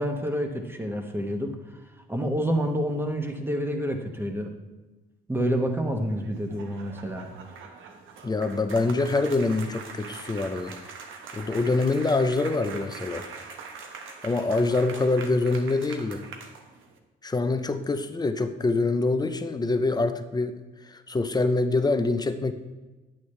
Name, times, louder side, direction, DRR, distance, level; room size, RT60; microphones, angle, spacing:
voice 1, 0.0-1.6 2.1-4.5 5.3-7.3, equal, 10° right, 4 dB, 1.2 m, -28 dB
sound 1, 6.0-17.0, right 5 dB, 80° right, 1.1 m, -43 dB
voice 2, 8.2-10.8 11.3-13.3 14.2-16.2 17.2-20.5 20.8-22.5, left 3 dB, 20° left, 9 dB, 0.7 m, -25 dB
9.1 x 8.7 x 3.3 m, 1.2 s
cardioid pair, 90°, 20 cm